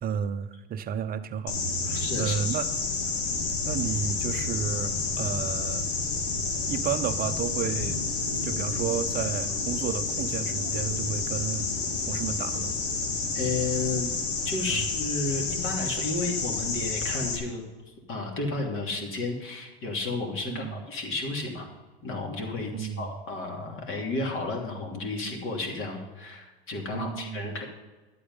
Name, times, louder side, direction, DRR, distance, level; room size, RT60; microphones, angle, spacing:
voice 1, 0.0-1.6 1.8-2.7 3.6-5.9 6.7-8.0 8.4-11.7 12.1-12.8 14.7-14.8 20.4-20.8 22.7-23.1 26.9-27.6, right 8 dB, 30° right, 10 dB, 0.8 m, -32 dB
sound 1, 1.5-17.4, left 4 dB, 75° left, 2.1 m, -30 dB
voice 2, 1.9-2.4 13.3-14.1 14.4-21.7 22.0-27.7, left 3 dB, 40° left, 1 dB, 3.0 m, -32 dB
12.0 x 8.5 x 5.5 m, 1.2 s
hypercardioid pair, 105°, 32 cm